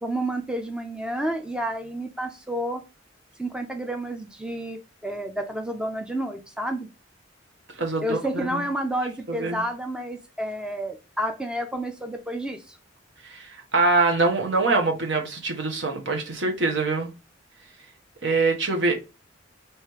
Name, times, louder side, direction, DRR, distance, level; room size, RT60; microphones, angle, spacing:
voice 1, 0.0-2.8 3.4-6.9 8.0-12.8, right 1 dB, 5° right, 0.4 m, -30 dB
voice 2, 7.8-8.2 8.5-8.6 9.3-9.6 13.2-17.1 18.2-19.0, right 3 dB, 65° right, 1.1 m, -24 dB
3.2 x 3.1 x 4.6 m
head